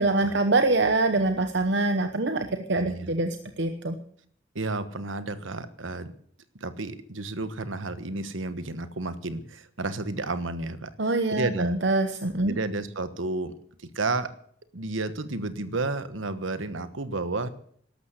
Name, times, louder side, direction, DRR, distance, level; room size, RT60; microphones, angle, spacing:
voice 1, 0.0-4.0 11.0-12.5, right 2 dB, 60° right, 7 dB, 1.0 m, -24 dB
voice 2, 2.7-3.1 4.5-6.1 6.5-10.9 11.3-11.8 12.4-13.5 13.9-14.3 14.7-17.5, right 2 dB, 85° right, 12 dB, 1.3 m, -31 dB
13.0 x 12.0 x 8.2 m, 0.63 s
head